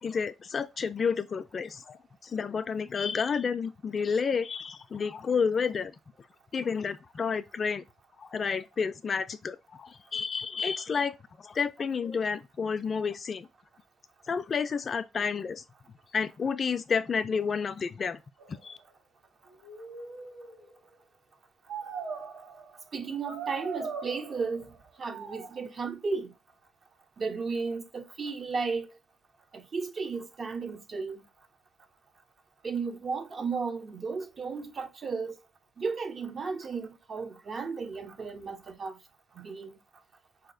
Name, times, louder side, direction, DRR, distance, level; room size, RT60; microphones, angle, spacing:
voice 1, 0.0-5.9 6.5-7.8 8.2-13.5 14.3-15.6 16.1-18.2 18.5-18.8, left 6 dB, 45° left, 0.3 m, -30 dB
sound 1, 18.4-18.6 19.5-20.7 21.7-22.7 23.3-24.6 25.0-25.6, right 5 dB, 85° right, 0.9 m, -40 dB
voice 2, 22.9-24.6 25.0-26.3 27.2-28.9 29.7-31.2 32.6-35.3 35.8-38.9 39.4-39.7, right 4 dB, 45° right, 0.6 m, -34 dB
4.0 x 2.8 x 2.5 m
cardioid pair, 90°, 0 cm